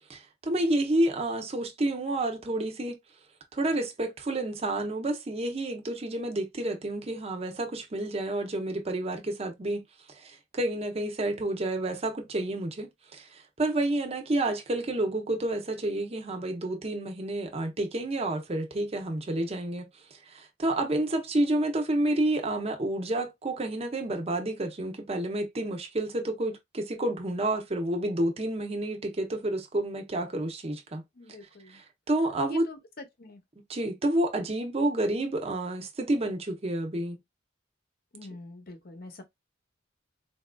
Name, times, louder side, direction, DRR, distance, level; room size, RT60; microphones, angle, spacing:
voice 1, 0.1-3.0 3.5-19.9 20.3-31.0 31.7-32.7 33.7-37.2, right 1 dB, 30° right, 0.7 m, -29 dB
voice 2, 31.2-31.8 32.5-32.8 33.2-33.4 38.1-39.2, left 2 dB, 50° left, 0.8 m, -45 dB
4.0 x 2.4 x 2.2 m
head